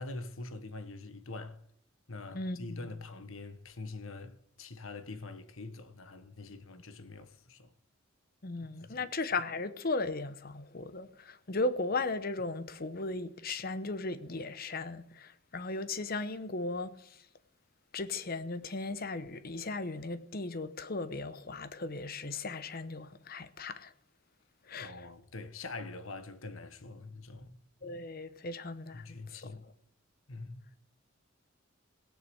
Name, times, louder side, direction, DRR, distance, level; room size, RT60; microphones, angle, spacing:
voice 1, 0.0-1.6 2.1-7.7 8.8-9.0 24.8-27.5 28.9-29.6 30.3-30.7, left 3 dB, 75° left, 1.2 m, -44 dB
voice 2, 2.3-2.9 8.4-17.3 17.9-23.9 24.6-25.1 27.8-29.5, left 3 dB, 45° left, 0.9 m, -37 dB
17.5 x 6.8 x 7.7 m
head